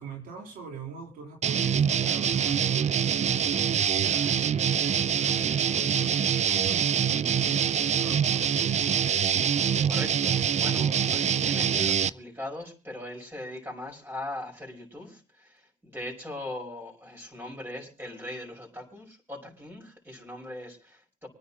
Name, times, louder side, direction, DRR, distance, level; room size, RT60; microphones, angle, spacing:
voice 1, 0.0-8.7, right 5 dB, 85° right, 2 dB, 3.7 m, -44 dB
sound 1, 1.4-12.1, right 8 dB, 50° right, 0.5 m, -25 dB
voice 2, 9.8-21.3, left 1 dB, 15° right, 0 dB, 5.5 m, -40 dB
25.0 x 9.8 x 2.9 m, 0.34 s
supercardioid pair, 60°, 15 cm